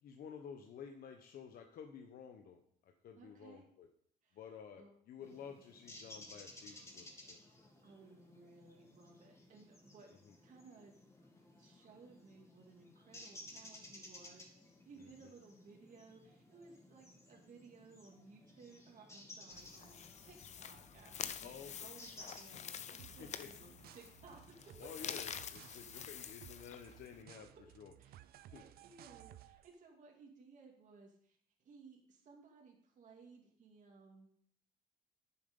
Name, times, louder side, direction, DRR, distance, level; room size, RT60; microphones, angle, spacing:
voice 1, 0.0-3.9 4.3-7.4 10.3-10.4 15.0-15.3 21.4-21.9 23.2-23.5 24.8-27.9 28.5-28.6, left 7 dB, 60° left, 4 dB, 1.0 m, -52 dB
voice 2, 3.2-3.7 4.2-4.4 4.8-4.9 7.8-10.1 10.4-10.9 11.6-24.9 28.0-31.4 31.6-34.3, right 4 dB, 45° right, -1 dB, 2.3 m, -60 dB
sound 1, 5.2-22.4, left 1 dB, 15° left, 2.3 m, -57 dB
sound 2, 19.5-27.2, left 8 dB, 45° left, 0.7 m, -48 dB
sound 3, 23.0-29.8, right 13 dB, 65° right, 0.5 m, -59 dB
10.0 x 7.2 x 5.4 m, 0.65 s
cardioid pair, 110°, 17 cm